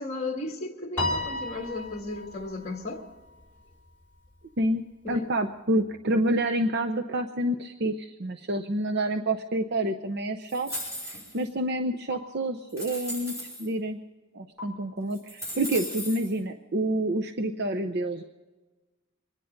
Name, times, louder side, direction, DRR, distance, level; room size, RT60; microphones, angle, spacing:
voice 1, 0.0-3.0 5.0-5.2, left 2 dB, 30° left, 1.7 m, -35 dB
Piano, 1.0-3.5, left 2 dB, 10° left, 3.5 m, -33 dB
voice 2, 4.6-10.7 11.0-14.0 14.3-18.2, right 1 dB, 50° right, 0.7 m, -28 dB
sound 1, 10.5-11.5 12.1-12.2 12.7-13.7 14.6-14.7 15.1-16.3, equal, 15° right, 5.6 m, -37 dB
24.5 x 10.5 x 5.2 m
head